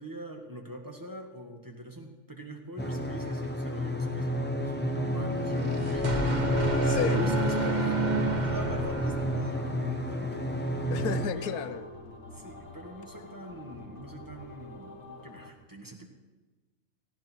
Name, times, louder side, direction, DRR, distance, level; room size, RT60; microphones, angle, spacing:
voice 1, 0.0-8.1 8.4-10.9 11.3-11.8 12.2-16.1, right 1 dB, 15° right, 1 dB, 1.8 m, -43 dB
sound 1, 2.8-11.3, left 1 dB, 10° left, 0.9 m, -29 dB
sound 2, 5.4-9.9, right 5 dB, 30° right, 1.3 m, -33 dB
sound 3, 6.4-15.5, left 2 dB, 50° left, 2.2 m, -47 dB
voice 2, 10.9-11.8, left 8 dB, 85° left, 12 dB, 1.3 m, -31 dB
18.0 x 15.0 x 4.6 m, 1.2 s
omnidirectional pair, 1.5 m